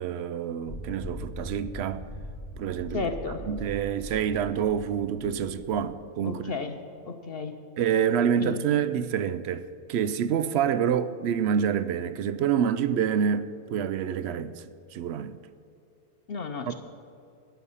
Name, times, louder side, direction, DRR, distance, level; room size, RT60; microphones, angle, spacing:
voice 1, 0.0-2.0 2.6-3.1 3.5-6.5 7.8-15.4 16.7-16.8, right 8 dB, 65° right, 0.6 m, -27 dB
sound 1, 0.7-5.9, equal, 15° left, 1.4 m, -41 dB
voice 2, 2.9-3.5 6.2-6.8 7.0-7.5 8.4-8.6 16.3-16.7, left 4 dB, 55° left, 0.8 m, -33 dB
13.0 x 10.5 x 5.6 m
omnidirectional pair, 1.5 m